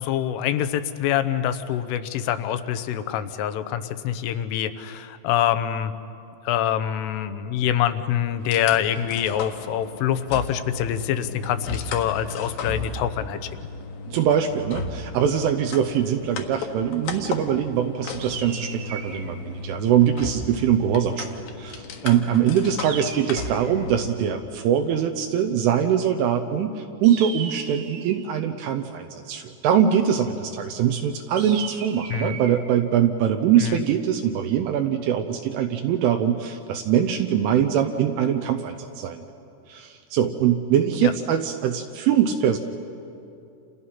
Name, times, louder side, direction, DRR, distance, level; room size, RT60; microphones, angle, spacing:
voice 1, 0.0-5.9 6.5-13.5 32.1-32.4 33.6-33.8 41.0-41.1, left 10 dB, 80° left, 11 dB, 3.3 m, -25 dB
sound 1, 8.4-24.1, left 4 dB, 65° left, 2.5 m, -35 dB
voice 2, 14.1-39.3 39.7-42.6, right 9 dB, 80° right, 5 dB, 3.2 m, -23 dB
sound 2, 18.2-19.3 22.8-23.8 27.0-28.3 31.4-32.6, right 7 dB, 65° right, 3.1 m, -37 dB
29.5 x 28.0 x 5.7 m, 2.6 s
omnidirectional pair, 5.9 m